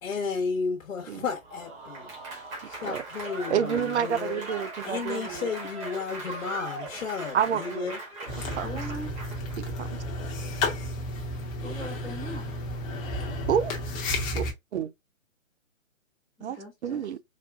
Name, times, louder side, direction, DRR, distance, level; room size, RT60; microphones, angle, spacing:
voice 1, 0.0-2.1 2.7-4.4 4.8-8.0, left 5 dB, 70° left, 1.2 m, -33 dB
Applause / Crowd, 1.4-9.6, right 2 dB, 15° right, 1.1 m, -39 dB
voice 2, 3.5-5.5 7.3-8.0 8.2-8.7 9.6-10.0 13.5-13.7 14.3-14.4 14.7-14.9 16.4-17.2, right 8 dB, 55° right, 0.5 m, -29 dB
sound 1, 8.3-14.5, left 1 dB, 25° left, 0.9 m, -32 dB
voice 3, 8.6-9.2 11.6-12.6 16.4-17.1, equal, ahead, 0.4 m, -40 dB
4.2 x 2.3 x 2.4 m
hypercardioid pair, 140°, 40 cm